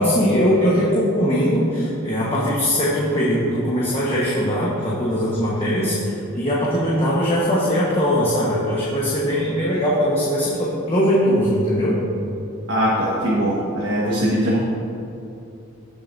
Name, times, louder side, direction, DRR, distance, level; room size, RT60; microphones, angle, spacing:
voice 1, 0.0-12.0, equal, 25° left, -7 dB, 1.3 m, -20 dB
voice 2, 12.7-14.6, equal, 55° right, -7 dB, 1.6 m, -21 dB
16.5 x 7.0 x 2.7 m, 2.8 s
head